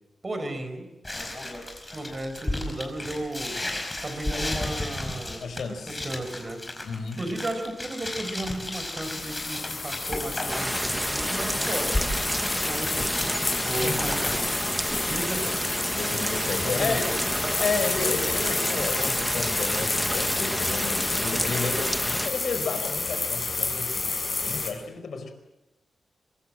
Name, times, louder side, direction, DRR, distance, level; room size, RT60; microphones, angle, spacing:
voice 1, 0.2-0.9 1.9-3.6 4.0-5.4 5.8-6.6 7.2-11.9 12.6-13.2 13.6-14.5 15.1-15.7 16.7-17.6 21.3-21.6, right 1 dB, 25° right, 7 dB, 5.2 m, -34 dB
sound 1, 1.0-14.4, left 1 dB, 15° left, 5.2 m, -34 dB
voice 2, 5.4-6.1 6.8-7.2 13.7-14.0 15.9-17.1 17.6-25.3, left 4 dB, 70° left, 9 dB, 4.7 m, -32 dB
sound 2, 9.0-24.7, left 3 dB, 35° left, 5.8 m, -30 dB
sound 3, 10.5-22.3, right 1 dB, 5° right, 1.0 m, -29 dB
25.0 x 22.0 x 7.7 m, 0.94 s
wide cardioid pair, 135°, 0 cm